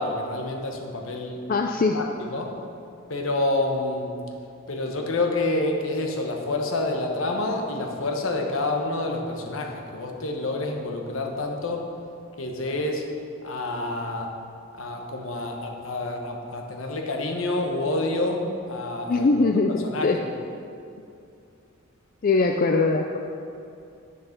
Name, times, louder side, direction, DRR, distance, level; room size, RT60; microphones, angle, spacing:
voice 1, 0.0-1.4 1.9-2.5 3.1-4.1 4.7-11.8 12.4-13.0 13.4-14.3 14.7-19.3 19.7-20.1, left 2 dB, 70° left, 2 dB, 1.1 m, -28 dB
voice 2, 1.5-2.0 19.1-19.7 20.0-20.2 22.2-23.2, left 3 dB, 40° left, 3 dB, 0.4 m, -21 dB
7.7 x 6.7 x 5.8 m, 2.5 s
head